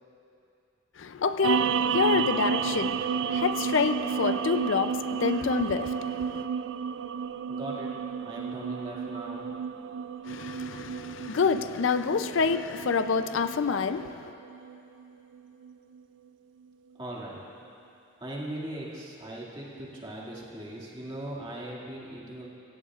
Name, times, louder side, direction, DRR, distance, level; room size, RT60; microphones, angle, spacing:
voice 1, 1.0-6.4 10.3-14.3, left 5 dB, 75° left, 0.5 m, -28 dB
sound 1, 1.4-16.0, right 6 dB, 65° right, 0.4 m, -32 dB
voice 2, 7.5-7.9 8.2-9.5 16.9-17.4 18.2-22.5, right 1 dB, 25° right, 2.1 m, -39 dB
23.5 x 17.0 x 2.4 m
head